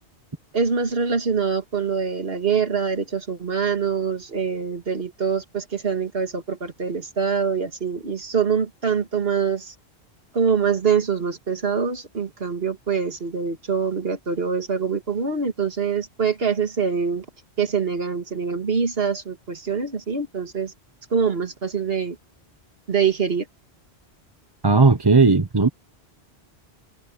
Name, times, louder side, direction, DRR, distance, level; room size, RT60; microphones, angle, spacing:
voice 1, 0.5-9.7 10.3-17.3 17.6-20.7 21.1-22.2 22.9-23.5, right 6 dB, 65° right, 2.2 m, -24 dB
voice 2, 24.6-25.7, right 4 dB, 25° right, 0.9 m, -16 dB
omnidirectional pair, 1.1 m